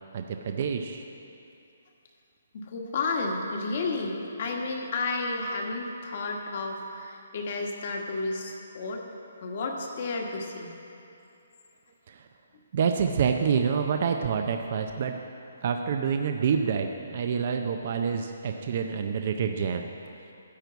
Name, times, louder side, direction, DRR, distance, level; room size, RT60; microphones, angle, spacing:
voice 1, 0.1-1.0 12.1-12.3 12.7-15.2 15.6-19.9, right 6 dB, 40° right, 5 dB, 0.5 m, -27 dB
voice 2, 2.5-9.0 9.4-10.7, left 3 dB, 40° left, 1 dB, 1.3 m, -32 dB
13.0 x 4.5 x 8.0 m, 2.8 s
hypercardioid pair, 165°, 0 cm